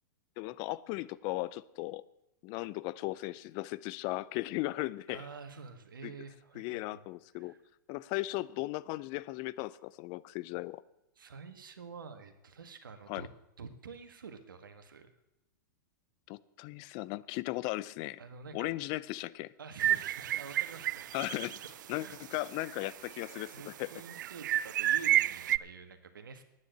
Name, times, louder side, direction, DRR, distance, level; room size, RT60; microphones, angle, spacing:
voice 1, 0.4-2.0 2.4-5.3 6.0-6.1 6.5-7.5 7.9-10.8 13.1-13.3 16.3-18.2 18.5-19.5 21.1-21.6 21.9-23.9, left 19 dB, 45° left, 0.6 m, -37 dB
voice 2, 5.1-7.0 7.3-7.6 11.1-13.3 13.6-15.1 18.2-18.7 19.6-21.1 21.4-22.2 23.3-26.4, right 5 dB, 85° right, 1.7 m, -48 dB
sound 1, 19.8-21.7 22.0-22.1 22.6-23.5 24.1-25.6, right 13 dB, 65° right, 0.4 m, -30 dB
10.0 x 9.8 x 8.0 m
hypercardioid pair, 115°, 11 cm